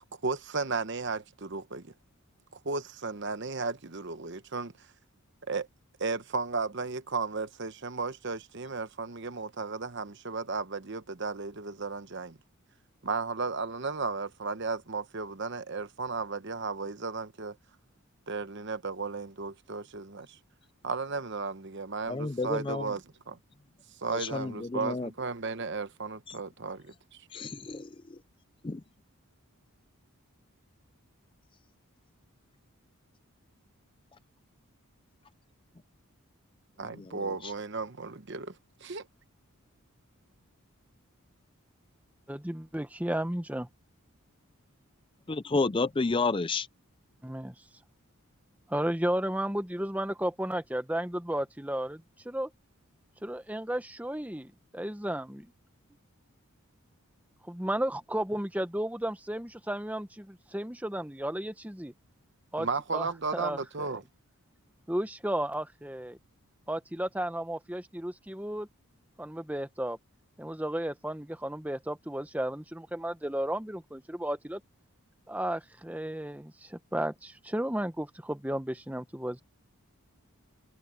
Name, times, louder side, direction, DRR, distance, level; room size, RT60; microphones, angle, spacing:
voice 1, 0.2-1.9 2.5-4.7 5.5-5.6 6.0-12.4 13.0-17.6 18.3-20.4 20.8-23.4 24.0-27.3 36.8-38.6 38.8-39.1 62.6-64.0, right 4 dB, 50° right, 1.0 m, -34 dB
voice 2, 22.1-22.8 24.1-25.1 26.3-26.4 27.3-28.2 28.6-28.8 37.0-37.3 45.3-46.7, left 3 dB, 20° left, 0.4 m, -31 dB
voice 3, 42.3-43.7 47.2-47.5 48.7-52.5 53.2-55.5 57.4-61.9 62.5-62.7 62.9-63.1 63.3-63.6 64.9-66.2 66.7-68.7 69.2-70.0 70.4-74.6 75.3-79.4, right 1 dB, 5° right, 0.9 m, -33 dB
head